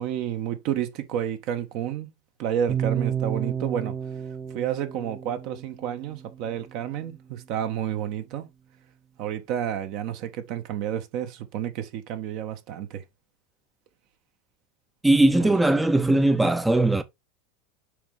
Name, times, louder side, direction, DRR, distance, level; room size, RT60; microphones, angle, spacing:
voice 1, 0.0-2.1 2.4-3.9 4.5-8.4 9.2-13.0 15.4-15.5, right 10 dB, 55° right, 1.4 m, -30 dB
sound 1, 2.7-6.8, right 8 dB, 30° right, 1.1 m, -31 dB
voice 2, 15.0-17.0, right 2 dB, 10° right, 0.7 m, -19 dB
6.9 x 4.8 x 3.4 m
figure-of-eight pair, 80°, 0 cm